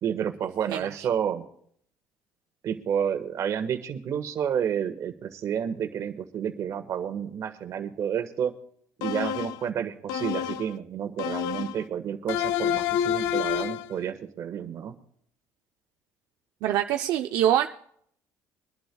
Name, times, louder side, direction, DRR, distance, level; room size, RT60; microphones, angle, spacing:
voice 1, 0.0-1.4 2.6-8.5 9.0-14.9, right 8 dB, 55° right, 7 dB, 1.5 m, -30 dB
sound 1, 9.0-9.7 10.1-10.7 11.2-11.8 12.3-13.9, left 10 dB, 85° left, 0.4 m, -28 dB
voice 2, 16.6-17.7, right 11 dB, 75° right, 4 dB, 0.6 m, -24 dB
24.0 x 11.5 x 2.3 m, 0.64 s
cardioid pair, 120°, 6 cm